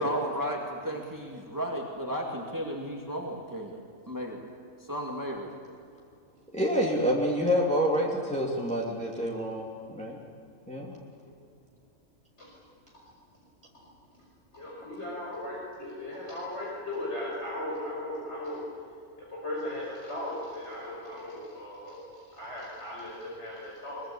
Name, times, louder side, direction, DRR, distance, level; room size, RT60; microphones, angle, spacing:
voice 1, 0.0-3.8 4.1-4.5 4.8-5.5, equal, 15° right, 0 dB, 2.3 m, -34 dB
voice 2, 6.5-10.2 10.7-11.0, equal, 5° left, -3 dB, 2.9 m, -27 dB
voice 3, 14.5-18.6 19.4-24.0, left 1 dB, 55° left, -5 dB, 5.7 m, -37 dB
23.0 x 22.5 x 8.7 m, 2.4 s
omnidirectional pair, 1.4 m